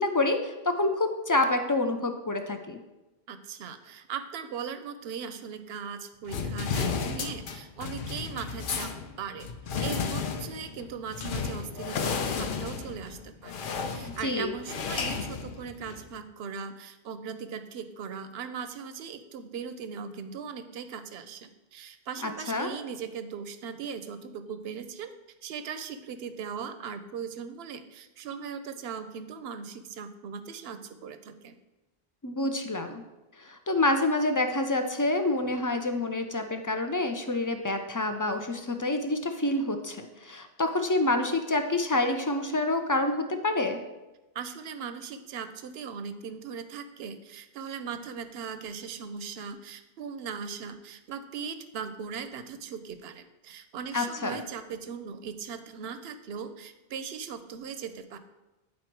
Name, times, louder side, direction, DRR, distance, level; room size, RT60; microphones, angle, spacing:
voice 1, 0.0-2.8 14.0-14.5 22.2-22.7 32.2-33.0 33.4-43.8 53.9-54.4, left 2 dB, 30° left, 7 dB, 0.3 m, -27 dB
voice 2, 3.3-8.9 9.2-9.5 9.8-13.5 13.8-25.1 25.4-31.6 44.3-58.2, right 6 dB, 80° right, 10 dB, 0.8 m, -39 dB
sound 1, 6.3-16.1, left 5 dB, 60° left, 0.7 m, -33 dB
9.5 x 4.1 x 4.5 m, 1.0 s
omnidirectional pair, 1.0 m